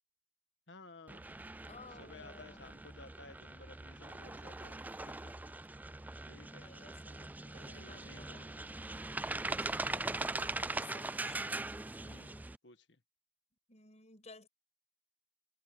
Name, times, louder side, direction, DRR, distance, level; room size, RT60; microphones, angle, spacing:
voice 1, 0.7-1.3 2.0-5.4 6.3-6.7 7.6-8.8 12.0-13.0, left 3 dB, 75° left, 1.7 m, -56 dB
sound 1, 1.1-12.6, right 2 dB, 10° right, 0.3 m, -41 dB
voice 2, 1.7-2.7 6.6-8.5 9.6-11.7 13.7-14.5, left 3 dB, 40° left, 5.7 m, -56 dB
head